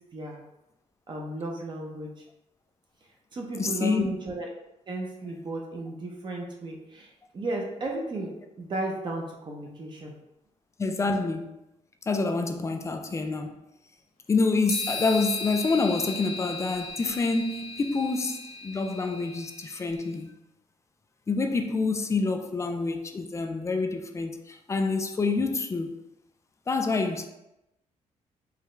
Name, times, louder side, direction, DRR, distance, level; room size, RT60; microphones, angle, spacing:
voice 1, 1.1-2.1 3.3-4.5 4.9-8.3 8.6-10.1, right 2 dB, 35° right, 0.7 m, -34 dB
voice 2, 3.5-4.1 10.8-11.6 12.1-13.6 14.3-20.3 21.3-25.9 26.7-27.3, left 3 dB, 25° left, 0.4 m, -27 dB
sound 1, 14.7-20.0, left 3 dB, 70° left, 1.3 m, -37 dB
4.8 x 2.3 x 3.1 m
cardioid pair, 130°, 13 cm